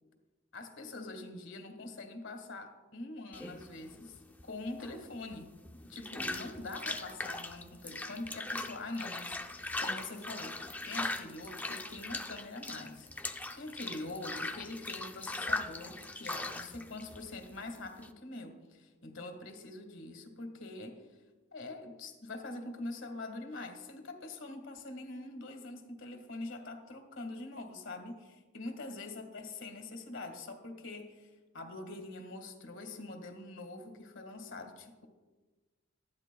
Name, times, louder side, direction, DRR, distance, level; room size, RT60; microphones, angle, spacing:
voice 1, 0.5-5.6 5.8-21.1 21.5-35.1, left 2 dB, 65° left, 5 dB, 1.7 m, -44 dB
sound 1, 3.3-18.1, left 2 dB, 10° left, 0.5 m, -40 dB
19.5 x 13.5 x 2.3 m, 1.3 s
head